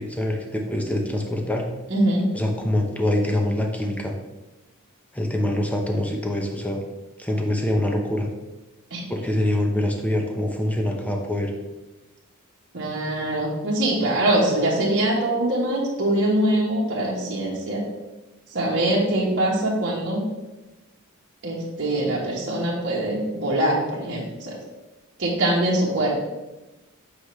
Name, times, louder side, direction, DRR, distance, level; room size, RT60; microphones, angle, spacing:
voice 1, 0.0-1.7 2.3-4.1 5.1-6.8 7.2-8.3 9.1-11.5, left 1 dB, 5° left, 2 dB, 0.8 m, -24 dB
voice 2, 1.9-2.2 8.9-9.0 12.7-17.8 18.5-20.2 21.4-24.6 25.2-26.2, right 1 dB, 55° right, -5 dB, 1.3 m, -23 dB
7.5 x 5.0 x 3.2 m, 1.1 s
head